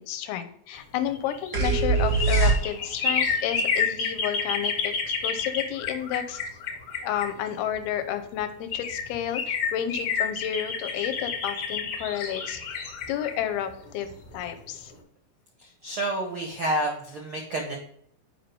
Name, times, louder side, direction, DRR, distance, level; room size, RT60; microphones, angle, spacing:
voice 1, 0.0-6.4 7.0-12.6 13.1-14.9, left 10 dB, 85° left, 9 dB, 2.7 m, -31 dB
sound 1, 1.0-7.8 8.4-8.5 8.7-14.5 14.8-14.9, left 5 dB, 55° left, 1.7 m, -30 dB
sound 2, 1.5-3.1, right 4 dB, 50° right, 0.9 m, -22 dB
voice 2, 15.8-17.8, right 1 dB, 90° right, 0 dB, 1.1 m, -29 dB
8.6 x 5.2 x 3.4 m, 0.68 s
omnidirectional pair, 4.4 m